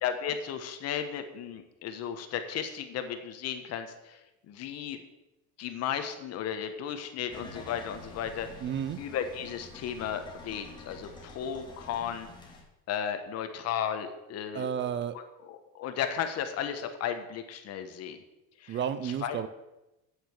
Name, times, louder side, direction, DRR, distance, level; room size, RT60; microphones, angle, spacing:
voice 1, 0.0-4.2 4.5-5.0 5.6-8.5 9.0-12.3 12.9-14.7 15.4-18.2 18.6-18.8 19.0-19.4, left 8 dB, 50° left, 8 dB, 1.3 m, -34 dB
sound 1, 7.3-12.6, left 2 dB, 15° left, 2.1 m, -48 dB
voice 2, 8.6-9.0 14.5-15.2 18.7-19.5, right 8 dB, 35° right, 13 dB, 0.5 m, -32 dB
8.8 x 7.8 x 6.3 m, 0.96 s
cardioid pair, 150°, 33 cm